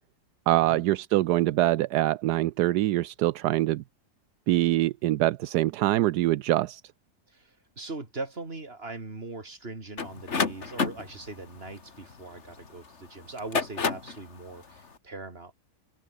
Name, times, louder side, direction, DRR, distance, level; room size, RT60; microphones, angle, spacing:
voice 1, 0.5-3.8 4.5-6.8, right 15 dB, 80° right, 1.2 m, -24 dB
voice 2, 7.3-15.5, right 3 dB, 35° right, 3.4 m, -40 dB
sound 1, 10.0-12.7 13.3-14.2, left 5 dB, 45° left, 2.1 m, -30 dB
omnidirectional pair, 1.8 m